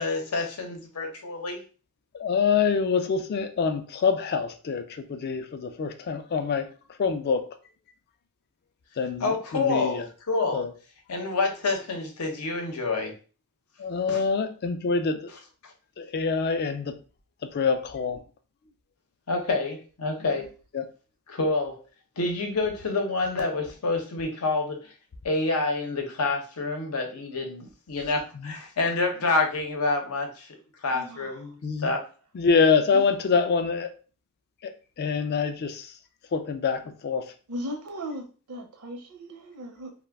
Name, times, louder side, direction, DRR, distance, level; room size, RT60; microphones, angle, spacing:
voice 1, 0.0-1.6 9.2-10.6 11.1-13.1 14.1-14.2 15.6-15.7 19.3-20.5 21.3-21.8 22.2-24.9 25.2-30.5 30.8-31.6 31.8-32.0, left 3 dB, 80° left, 0.7 m, -28 dB
voice 2, 2.1-6.7 7.0-7.5 9.0-10.1 10.5-10.7 13.8-15.3 16.0-16.9 17.5-18.2 20.7-20.9 28.3-28.5 31.6-31.9 32.3-33.9 34.6-34.7 35.0-35.9 36.3-37.3, left 5 dB, 50° left, 0.4 m, -25 dB
voice 3, 20.2-20.5 29.2-29.6 30.9-31.5 32.9-33.2 37.5-39.9, equal, 75° right, 0.6 m, -39 dB
2.3 x 2.1 x 3.4 m
head